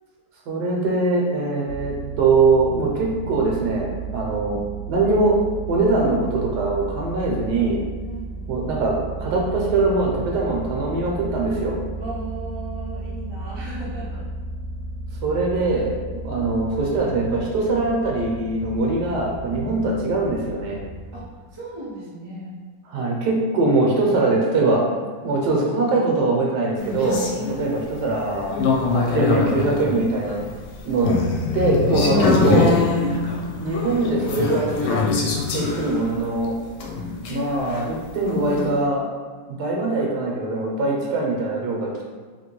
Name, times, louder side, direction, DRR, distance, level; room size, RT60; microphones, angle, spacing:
voice 1, 0.5-4.6 4.9-5.4 5.7-7.8 8.5-11.8 15.2-15.9 16.2-20.8 22.9-24.9 25.2-28.5 28.9-30.4 30.8-31.2 31.5-32.8 33.6-35.2 35.5-36.5 37.3-39.0 39.6-42.0, right 3 dB, 70° right, -1 dB, 1.2 m, -22 dB
sound 1, 1.6-21.3, right 4 dB, 55° right, 0.9 m, -34 dB
voice 2, 8.1-8.6 12.0-14.3 15.6-15.9 21.1-22.5 27.4-27.7 32.9-33.2, right 2 dB, 35° right, -8 dB, 0.4 m, -36 dB
sound 2, 26.8-38.7, left 4 dB, 75° left, 1.2 m, -24 dB
2.9 x 2.8 x 2.9 m, 1.5 s
omnidirectional pair, 1.9 m